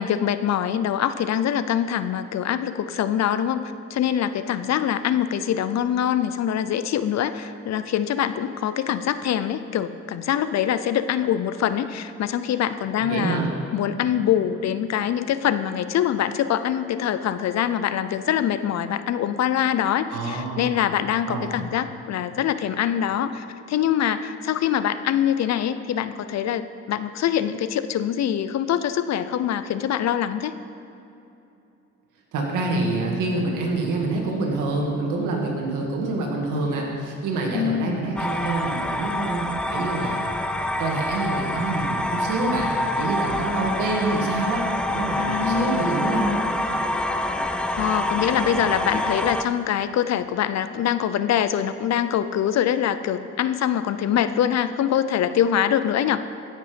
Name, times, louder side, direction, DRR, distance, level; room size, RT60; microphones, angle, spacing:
voice 1, 0.0-13.4 13.7-30.5 37.5-38.1 45.2-45.9 47.8-56.2, left 10 dB, 60° left, 12 dB, 0.6 m, -24 dB
voice 2, 13.0-13.5 20.1-20.7 21.3-21.5 32.3-40.3 40.8-44.6 44.9-46.3, right 2 dB, 90° right, -1 dB, 2.0 m, -26 dB
sound 1, 38.2-49.4, left 1 dB, 5° left, 0.5 m, -26 dB
15.5 x 6.6 x 5.1 m, 2.8 s
cardioid pair, 90°, 30 cm